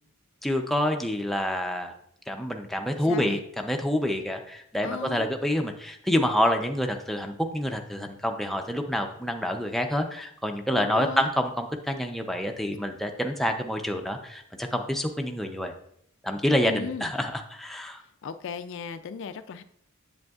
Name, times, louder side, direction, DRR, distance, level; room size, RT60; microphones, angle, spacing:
voice 1, 0.4-1.9 2.3-15.7 16.2-18.0, equal, ahead, 3 dB, 0.5 m, -27 dB
voice 2, 3.0-3.4 4.8-5.3 10.7-11.3 16.7-17.1 18.2-19.6, left 6 dB, 60° left, 10 dB, 0.3 m, -36 dB
7.8 x 7.7 x 2.4 m, 0.71 s
head